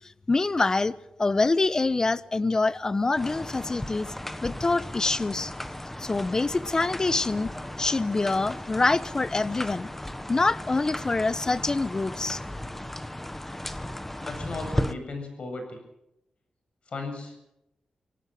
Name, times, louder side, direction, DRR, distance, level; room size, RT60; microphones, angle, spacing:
voice 1, 0.3-0.9 1.2-4.1 4.4-5.5 6.0-9.9 10.3-12.4, left 3 dB, 30° left, 1.0 m, -25 dB
sound 1, 3.2-14.9, left 1 dB, 10° left, 1.3 m, -36 dB
voice 2, 14.2-15.8 16.9-17.4, left 3 dB, 60° left, 7.8 m, -36 dB
26.0 x 17.5 x 7.8 m
wide cardioid pair, 90°, 2 cm